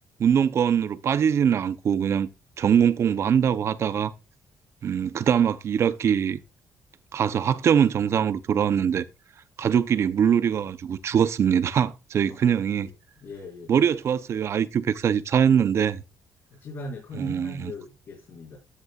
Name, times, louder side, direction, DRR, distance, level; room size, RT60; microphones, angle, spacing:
voice 1, 0.2-2.3 2.6-4.1 4.8-6.4 7.1-9.0 9.6-12.9 13.7-16.0 17.2-17.7, right 8 dB, 50° right, 0.7 m, -22 dB
voice 2, 12.4-12.9 13.2-13.7 16.6-18.6, left 1 dB, 55° left, 4.3 m, -39 dB
13.0 x 6.9 x 2.4 m
cardioid pair, 125°, 6 cm